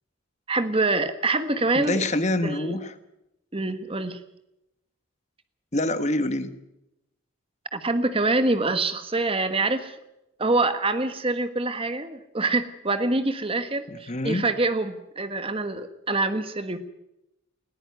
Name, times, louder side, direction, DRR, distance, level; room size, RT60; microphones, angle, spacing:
voice 1, 0.5-2.0 2.4-2.8 3.5-4.2 7.7-10.0 10.4-16.8, right 2 dB, 25° right, 10 dB, 1.3 m, -25 dB
voice 2, 1.7-2.9 5.7-6.6 13.9-14.5, left 1 dB, 35° left, 10 dB, 1.3 m, -26 dB
20.5 x 14.0 x 9.5 m, 0.89 s
head